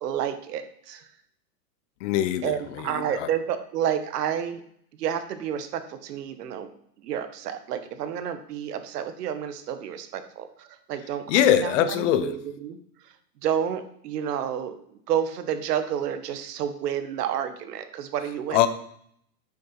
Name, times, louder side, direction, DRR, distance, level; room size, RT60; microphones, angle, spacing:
voice 1, 0.0-1.1 2.4-4.6 5.0-6.7 7.0-11.7 12.0-12.8 13.0-13.1 13.4-14.7 15.1-18.6, right 9 dB, 70° right, 10 dB, 1.5 m, -30 dB
voice 2, 2.0-3.3 11.3-12.4 18.5-18.7, left 11 dB, 45° left, 13 dB, 0.9 m, -23 dB
9.1 x 6.9 x 5.7 m, 0.68 s
supercardioid pair, 150°, 49 cm